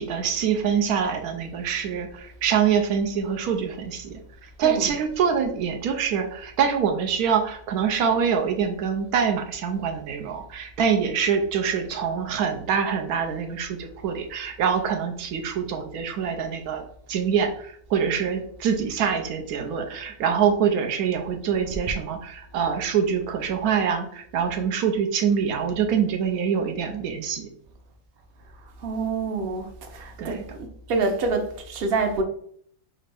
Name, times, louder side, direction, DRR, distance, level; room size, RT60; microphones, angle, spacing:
voice 1, 0.0-16.8 17.1-27.5 30.2-30.4, right 7 dB, 85° right, 1.1 m, -25 dB
voice 2, 28.8-30.4 30.9-32.2, right 3 dB, 55° right, 0.7 m, -26 dB
5.3 x 2.5 x 3.3 m
omnidirectional pair, 1.6 m